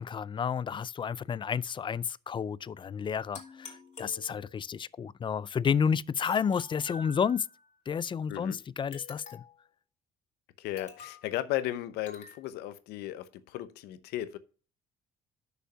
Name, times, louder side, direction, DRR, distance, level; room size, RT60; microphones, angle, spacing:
voice 1, 0.0-7.5 7.9-9.4, left 7 dB, 30° left, 0.4 m, -31 dB
sound 1, 3.3-4.7 6.2-7.6 8.9-9.7 10.8-11.3 12.1-12.4, left 5 dB, 45° left, 2.8 m, -48 dB
voice 2, 8.3-8.6 10.6-14.4, left 14 dB, 85° left, 0.8 m, -35 dB
6.4 x 5.5 x 6.6 m
cardioid pair, 85°, 16 cm